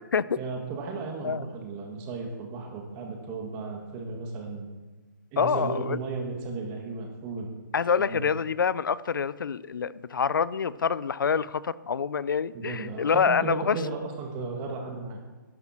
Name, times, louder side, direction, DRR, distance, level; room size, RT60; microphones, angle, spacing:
voice 1, 0.4-4.7 5.3-7.6 8.0-8.3 12.5-15.2, right 3 dB, 20° right, 2 dB, 1.8 m, -35 dB
voice 2, 5.4-6.0 7.7-13.8, left 6 dB, 80° left, 19 dB, 0.5 m, -26 dB
12.0 x 11.5 x 4.4 m, 1.2 s
hypercardioid pair, 160°, 11 cm